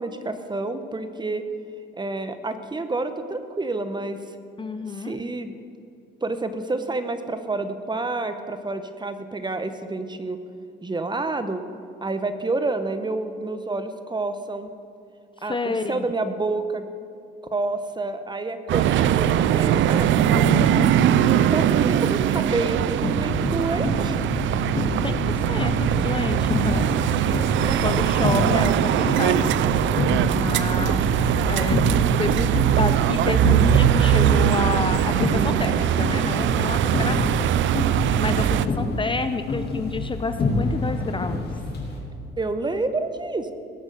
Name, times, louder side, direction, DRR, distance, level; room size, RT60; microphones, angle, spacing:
voice 1, 0.0-1.4 2.0-4.2 4.9-5.5 6.2-10.4 10.8-11.6 12.0-14.7 15.4-16.9 17.5-20.2 21.5-24.2 27.6-28.1 42.4-43.5, right 3 dB, 20° right, 9 dB, 1.0 m, -28 dB
voice 2, 4.6-5.2 15.4-16.1 20.3-20.9 25.0-27.3 27.8-29.8 30.3-31.0 31.3-31.8 32.2-32.5 32.8-37.5 38.1-41.4, left 3 dB, 25° left, 9 dB, 0.6 m, -29 dB
sound 1, 18.7-38.7, right 10 dB, 75° right, 0.5 m, -21 dB
sound 2, 23.0-42.0, left 2 dB, 55° left, 3.3 m, -28 dB
18.5 x 6.3 x 6.7 m, 2.5 s
cardioid pair, 90°, 20 cm